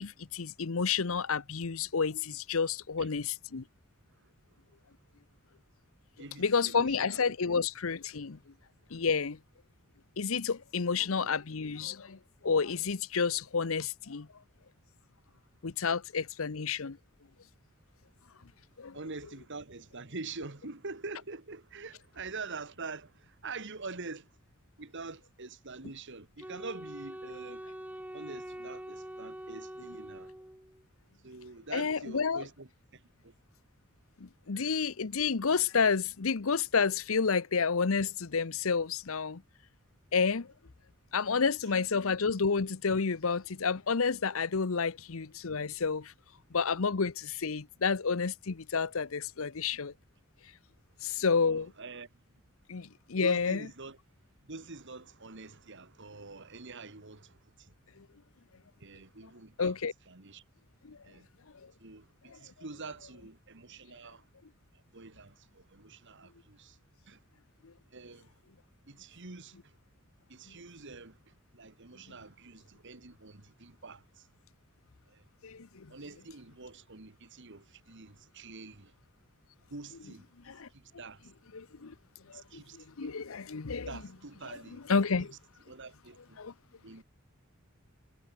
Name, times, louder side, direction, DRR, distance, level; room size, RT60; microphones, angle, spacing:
voice 1, 0.0-3.6 6.4-8.4 8.9-9.4 10.2-12.2 12.4-14.3 15.6-17.0 18.8-19.0 31.7-32.4 34.2-39.4 40.1-40.5 41.1-46.1 46.5-49.9 51.0-51.7 52.7-53.6 58.0-58.1 59.6-59.9 60.8-61.0 62.3-62.4 67.6-67.7 75.4-75.9 80.5-80.7 81.5-81.9 82.3-83.9 84.9-85.3 86.4-86.5, left 5 dB, 65° left, 0.8 m, -30 dB
voice 2, 6.2-7.6 10.9-11.3 18.9-24.3 24.8-27.6 28.1-30.3 31.2-33.3 34.5-34.8 51.0-52.1 53.2-54.0 54.5-57.7 58.8-59.8 60.1-60.4 60.9-61.3 61.8-64.3 64.7-66.8 67.1-67.2 67.9-68.3 68.9-69.7 70.3-74.3 75.1-75.2 75.9-78.9 79.7-80.3 80.7-81.3 82.3-83.1 83.9-84.9 85.2-85.3 85.7-86.4 86.8-87.0, right 3 dB, 55° right, 2.0 m, -46 dB
Wind instrument woodwind instrument, 26.4-30.8, equal, 5° right, 2.1 m, -44 dB
head